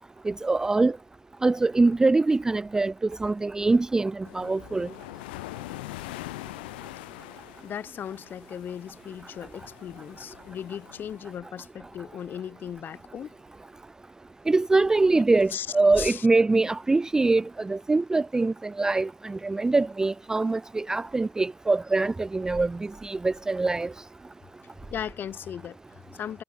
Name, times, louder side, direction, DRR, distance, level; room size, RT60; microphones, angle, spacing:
voice 1, 0.3-0.9 1.4-2.9 3.2-4.9 14.5-23.9, right 3 dB, 10° right, 0.5 m, -23 dB
sound 1, 4.2-11.4, left 21 dB, 75° left, 1.9 m, -43 dB
voice 2, 7.6-13.4 15.5-16.3 24.9-26.4, left 9 dB, 40° left, 5.1 m, -37 dB
hypercardioid pair, 90°, 5 cm